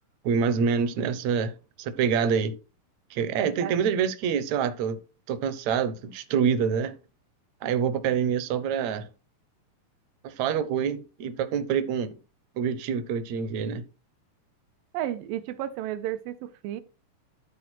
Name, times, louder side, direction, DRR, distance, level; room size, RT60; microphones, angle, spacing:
voice 1, 0.2-1.5 1.8-2.5 3.1-5.0 5.3-6.9 7.6-9.1 10.2-12.2 12.6-13.8, right 7 dB, 70° right, 1.9 m, -26 dB
voice 2, 3.4-3.8 14.9-16.8, right 12 dB, 90° right, 2.5 m, -33 dB
13.0 x 4.5 x 4.5 m
omnidirectional pair, 4.0 m